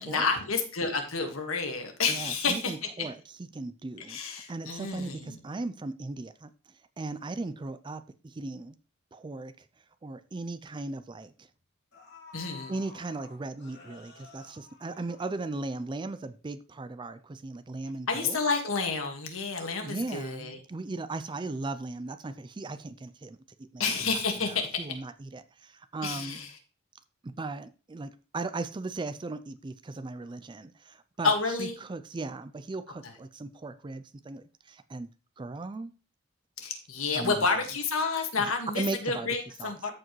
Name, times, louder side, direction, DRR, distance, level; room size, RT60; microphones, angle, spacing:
voice 1, 0.0-2.7 4.1-5.4 12.3-12.7 18.1-20.6 23.8-24.7 26.0-26.5 31.2-31.8 36.6-39.9, left 4 dB, 80° left, 4 dB, 1.7 m, -29 dB
voice 2, 2.1-6.5 7.0-8.8 9.1-9.7 10.0-11.5 12.7-18.4 19.8-26.4 27.2-35.1 35.4-35.9 37.1-37.5 38.4-39.9, right 3 dB, 20° right, 11 dB, 0.4 m, -38 dB
sound 1, 9.7-9.8 10.2-10.4 11.4-11.5 11.9-15.8 16.2-16.3, left 4 dB, 55° left, 2.3 m, -52 dB
13.5 x 4.8 x 3.1 m, 0.34 s
head